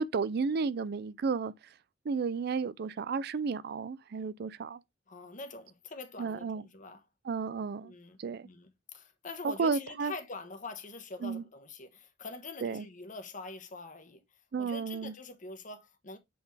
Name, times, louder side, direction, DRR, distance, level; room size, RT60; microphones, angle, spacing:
voice 1, 0.0-1.5 2.1-4.8 6.2-6.6 7.2-7.9 8.2-8.5 9.4-10.1 11.2-11.4 12.6-12.9 14.5-15.1, right 5 dB, 55° right, 0.4 m, -32 dB
voice 2, 5.1-7.0 7.8-14.2 14.6-16.2, left 3 dB, 45° left, 1.2 m, -44 dB
7.6 x 4.0 x 3.3 m
head